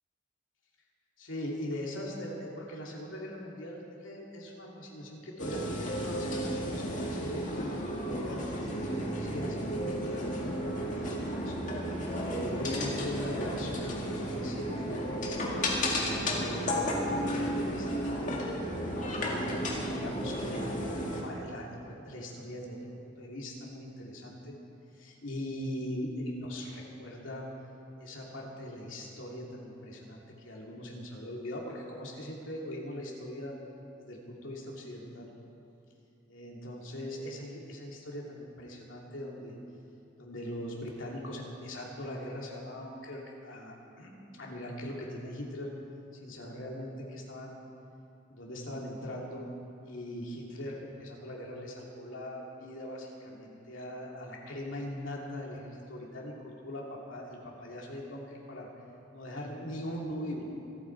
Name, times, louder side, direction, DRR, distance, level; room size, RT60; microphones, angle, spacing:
voice 1, 1.2-8.4 9.2-11.6 12.2-15.7 16.3-18.4 19.0-24.6 25.0-27.5 28.0-33.5 33.9-35.3 36.3-39.6 40.2-45.7 46.1-47.5 48.3-49.4 49.8-58.7 59.1-60.5, left 1 dB, 85° left, -2 dB, 2.8 m, -40 dB
sound 1, 5.4-21.2, equal, 40° left, 2.1 m, -33 dB
26.5 x 9.1 x 4.7 m, 2.9 s
head